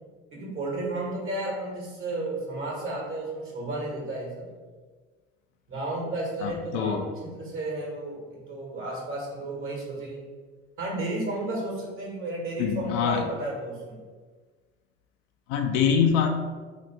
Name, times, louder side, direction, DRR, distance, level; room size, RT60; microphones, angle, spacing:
voice 1, 0.3-4.5 5.7-10.2 10.8-14.0, right 2 dB, 40° right, -2 dB, 1.5 m, -33 dB
voice 2, 6.4-7.1 12.6-13.3 15.5-16.3, left 7 dB, 65° left, 4 dB, 0.5 m, -24 dB
2.9 x 2.5 x 4.2 m, 1.4 s
hypercardioid pair, 65°, 33 cm